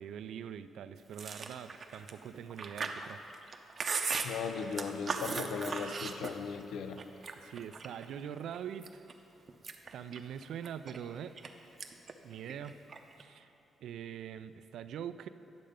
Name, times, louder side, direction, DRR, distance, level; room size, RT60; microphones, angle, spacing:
voice 1, 0.0-3.2 7.4-9.1 9.9-11.4 12.2-12.8 13.2-13.5 13.8-15.3, right 8 dB, 80° right, 12 dB, 0.3 m, -43 dB
Chewing mastication, 1.1-6.6 7.0-8.1 8.5-9.1 9.5-11.5 11.8-12.1 12.4-13.2, right 4 dB, 45° right, 0.6 m, -38 dB
voice 2, 4.2-7.0, left 6 dB, 85° left, 9 dB, 0.5 m, -37 dB
10.5 x 6.6 x 5.0 m, 2.9 s
cardioid pair, 95°, 0 cm